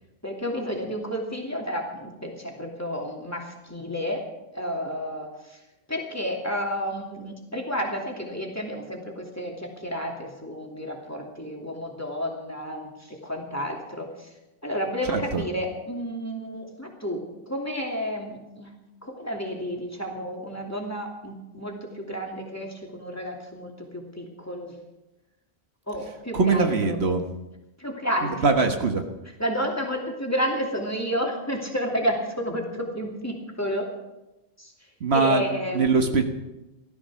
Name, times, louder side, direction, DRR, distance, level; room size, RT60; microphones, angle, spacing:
voice 1, 0.2-4.2 4.5-5.6 5.9-14.3 14.6-18.7 19.0-24.7 25.9-27.0 27.8-28.7 29.4-33.9 34.6-34.7 35.1-36.2, equal, 15° left, 0 dB, 2.7 m, -31 dB
voice 2, 15.1-15.4 26.3-27.2 28.2-29.0 35.0-35.4 35.7-36.2, right 4 dB, 75° right, 5 dB, 1.7 m, -22 dB
16.0 x 13.0 x 6.3 m, 1.0 s
omnidirectional pair, 1.1 m